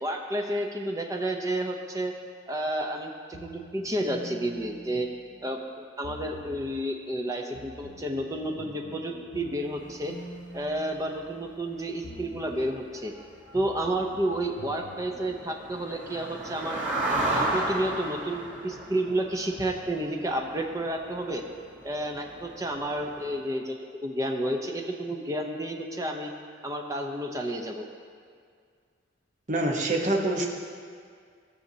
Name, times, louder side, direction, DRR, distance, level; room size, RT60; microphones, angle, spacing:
voice 1, 0.0-2.1 2.5-5.1 5.4-10.1 10.5-13.1 13.5-16.8 17.1-21.4 21.8-26.3 26.6-27.9, right 1 dB, 20° right, 2 dB, 0.7 m, -31 dB
sound 1, 3.3-5.6 6.0-6.9 7.5-11.7 12.0-12.9 13.5-15.3, equal, 55° left, 0.6 m, -46 dB
sound 2, 9.6-9.7 10.2-10.3 10.5-10.7 11.1-11.4 11.8-11.9 12.2-12.3 12.5-12.7 12.9-23.3, right 2 dB, 85° right, 2.6 m, -35 dB
voice 2, 29.5-30.4, right 2 dB, 40° right, 0 dB, 1.1 m, -25 dB
17.5 x 6.4 x 2.8 m, 2.1 s
head